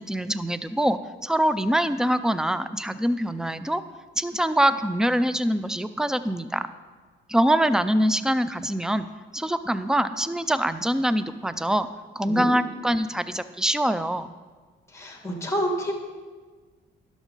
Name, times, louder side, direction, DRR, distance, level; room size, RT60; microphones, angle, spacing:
voice 1, 0.0-3.8 4.2-6.7 7.3-9.1 9.3-11.9 12.2-14.3, right 1 dB, 5° right, 13 dB, 0.4 m, -24 dB
voice 2, 14.9-15.9, equal, 15° left, 2 dB, 1.7 m, -28 dB
11.5 x 6.3 x 3.9 m, 1.4 s
cardioid pair, 90°, 20 cm